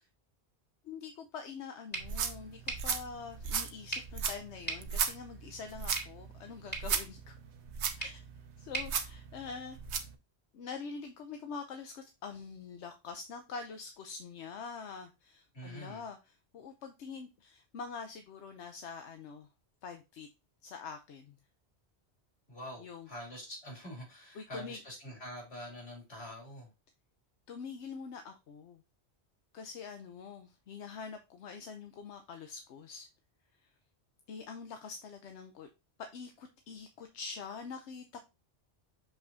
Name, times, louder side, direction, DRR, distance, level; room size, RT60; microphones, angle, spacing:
voice 1, 0.8-7.3 7.9-8.2 8.6-9.8 10.5-19.5 19.8-20.3 20.6-21.3 22.8-23.1 24.3-24.8 27.5-28.8 29.5-33.1 34.3-35.7 36.0-38.2, left 5 dB, 85° left, 1.0 m, -45 dB
sound 1, 1.9-10.0, right 3 dB, 10° left, 2.5 m, -45 dB
sound 2, 2.0-10.2, right 6 dB, 80° right, 1.1 m, -37 dB
voice 2, 15.5-16.0 22.5-26.7, equal, 65° left, 3.1 m, -45 dB
6.7 x 5.6 x 2.6 m
omnidirectional pair, 1.1 m